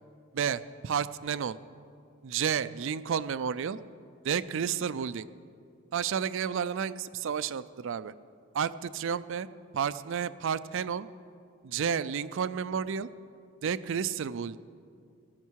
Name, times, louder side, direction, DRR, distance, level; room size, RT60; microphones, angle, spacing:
voice 1, 0.3-1.6 2.2-3.8 4.2-5.3 5.9-8.1 8.5-9.5 9.7-11.1 11.6-13.1 13.6-14.6, right 7 dB, 65° right, 15 dB, 0.4 m, -31 dB
16.5 x 12.5 x 4.7 m, 2.5 s
head